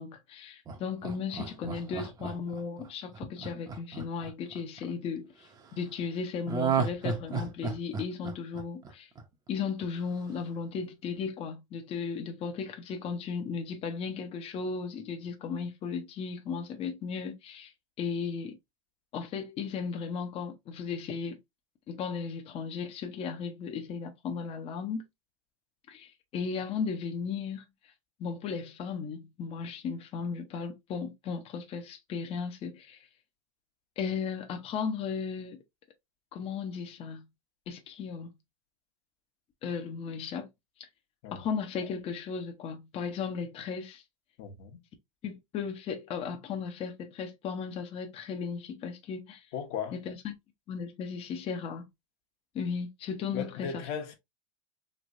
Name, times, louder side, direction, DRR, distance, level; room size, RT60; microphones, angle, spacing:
voice 1, 0.0-5.5 5.8-9.1 9.5-17.7 18.0-18.6 19.1-21.4 21.9-25.0 25.9-27.6 28.2-33.1 34.0-35.6 36.3-37.2 37.7-38.3 39.6-40.5 40.8-40.9 41.3-44.0 45.2-49.5 49.9-50.3 50.7-51.9 52.5-53.9, left 5 dB, 35° left, 0.7 m, -36 dB
Laughter, 0.7-4.9 6.5-9.5 9.8-9.9, right 5 dB, 20° right, 0.7 m, -33 dB
voice 2, 44.4-44.8 49.5-50.0 53.3-54.1, left 7 dB, 55° left, 1.1 m, -36 dB
3.2 x 3.0 x 2.5 m
hypercardioid pair, 110°, 17 cm